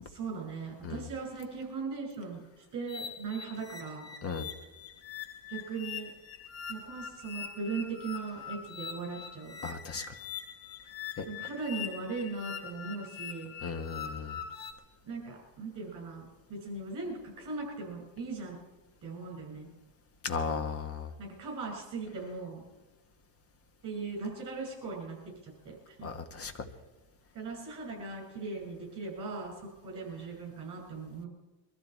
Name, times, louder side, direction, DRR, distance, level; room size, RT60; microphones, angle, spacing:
voice 1, 0.0-4.1 5.5-6.1 6.7-9.6 11.3-13.6 15.0-18.6 19.0-19.7 21.2-22.7 23.8-25.2 25.4-26.1 27.3-31.3, right 4 dB, 40° right, 0 dB, 6.0 m, -39 dB
sound 1, 2.9-14.7, left 8 dB, 90° left, 2.6 m, -43 dB
voice 2, 9.6-10.1 11.2-11.3 13.6-14.4 20.2-21.1 26.0-26.5, left 5 dB, 30° left, 7 dB, 1.4 m, -35 dB
23.0 x 13.5 x 4.6 m, 1.1 s
cardioid pair, 160°, 47 cm